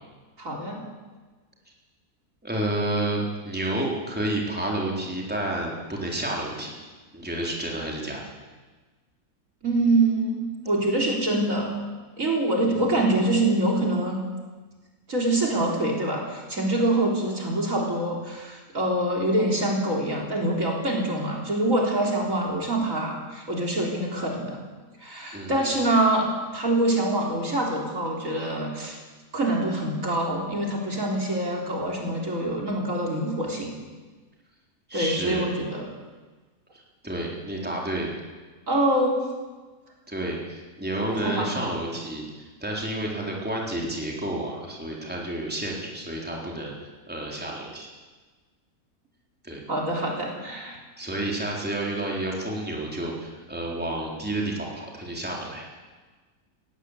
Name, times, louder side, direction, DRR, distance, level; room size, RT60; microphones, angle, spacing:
voice 1, 0.4-0.8 9.6-11.7 12.2-14.2 15.1-24.6 25.0-26.3 26.5-29.0 29.3-33.7 34.9-35.8 38.7-39.3 41.2-41.6 49.7-50.8, right 1 dB, 55° right, -1 dB, 4.2 m, -25 dB
voice 2, 2.4-6.7 7.1-8.2 12.7-13.1 25.3-25.7 34.9-35.5 36.7-38.1 40.1-47.9 49.4-49.6 51.0-55.7, right 1 dB, 5° right, -2 dB, 3.9 m, -30 dB
20.5 x 16.5 x 8.2 m, 1.3 s
omnidirectional pair, 1.6 m